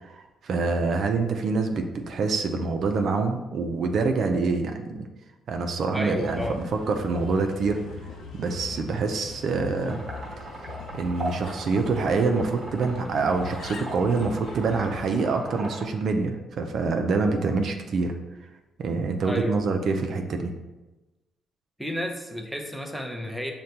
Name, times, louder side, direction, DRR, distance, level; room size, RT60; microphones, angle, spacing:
voice 1, 0.0-5.1 5.5-7.8 8.3-10.0 10.9-18.2 18.8-20.5, right 4 dB, 60° right, 4 dB, 0.4 m, -26 dB
voice 2, 5.9-6.6 19.2-19.6 21.8-23.5, equal, ahead, 3 dB, 0.5 m, -31 dB
Bird, 6.2-15.2, left 4 dB, 65° left, 0.4 m, -41 dB
sound 1, 9.8-15.8, right 1 dB, 35° right, 1.0 m, -39 dB
6.4 x 2.2 x 2.8 m, 1.1 s
cardioid pair, 90°, 0 cm